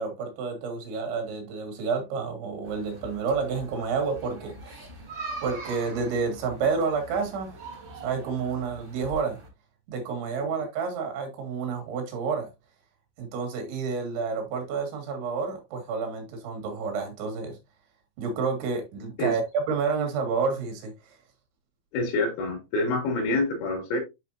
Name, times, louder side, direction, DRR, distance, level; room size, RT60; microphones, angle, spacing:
voice 1, 0.0-4.9 5.4-7.6 8.0-9.4 9.9-12.5 13.2-17.6 18.2-20.9, right 5 dB, 90° right, 4.7 m, -29 dB
sound 1, 2.6-9.5, right 3 dB, 35° right, 4.4 m, -42 dB
voice 2, 21.9-24.0, left 2 dB, 85° left, 4.9 m, -27 dB
10.5 x 5.0 x 2.8 m
omnidirectional pair, 5.1 m